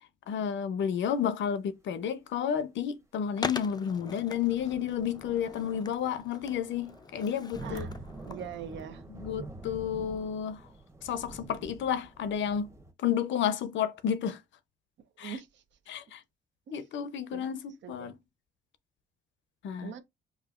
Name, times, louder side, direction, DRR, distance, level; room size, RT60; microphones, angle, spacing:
voice 1, 0.3-7.9 9.1-10.6 11.0-12.7 13.0-14.4 15.2-15.4 15.9-16.2 16.7-18.1 19.6-19.9, left 8 dB, 70° left, 0.6 m, -31 dB
Skateboard, 3.4-8.9, left 4 dB, 20° left, 0.4 m, -42 dB
sound 1, 4.2-12.9, right 2 dB, 15° right, 0.9 m, -46 dB
voice 2, 8.3-9.0 15.2-15.6 16.7-16.8 17.3-17.4 17.8-18.1 19.8-20.0, right 8 dB, 70° right, 0.7 m, -42 dB
4.9 x 2.4 x 2.4 m
cardioid pair, 90°, 20 cm